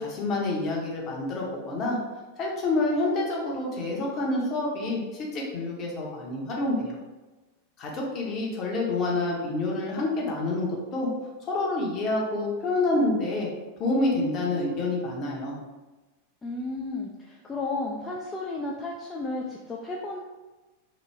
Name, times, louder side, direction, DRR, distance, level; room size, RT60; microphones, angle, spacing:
voice 1, 0.0-2.0 2.4-6.9 7.8-11.1 11.5-13.5 13.8-15.5, left 2 dB, 35° left, -2 dB, 0.8 m, -27 dB
voice 2, 16.4-20.2, left 2 dB, 15° left, -2 dB, 0.3 m, -33 dB
3.0 x 2.2 x 3.3 m, 1.2 s
figure-of-eight pair, 90°, 0 cm